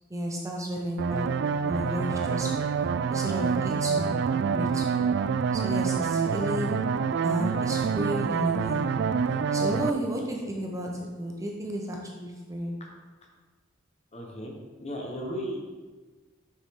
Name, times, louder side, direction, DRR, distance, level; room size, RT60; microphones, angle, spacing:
voice 1, 0.1-2.7 3.1-5.0 5.5-6.8 7.2-8.9 9.5-12.8, equal, 15° right, 0 dB, 0.8 m, -33 dB
sound 1, 1.0-9.9, right 6 dB, 60° right, 0.3 m, -27 dB
voice 2, 14.1-15.6, equal, 35° left, 0 dB, 1.2 m, -35 dB
6.6 x 6.3 x 3.7 m, 1.3 s
head